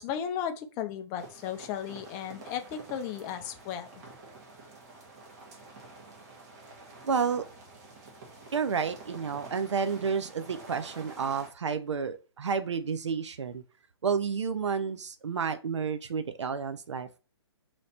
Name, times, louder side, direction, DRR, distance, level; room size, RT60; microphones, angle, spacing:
voice 1, 0.0-3.9, left 9 dB, 20° left, 8 dB, 0.4 m, -35 dB
sound 1, 1.2-11.5, right 3 dB, 40° right, 1.3 m, -49 dB
voice 2, 7.0-7.4 8.5-13.6 14.0-17.2, right 6 dB, 85° right, 10 dB, 0.5 m, -30 dB
3.1 x 2.9 x 4.2 m, 0.32 s
hypercardioid pair, 145°, 15 cm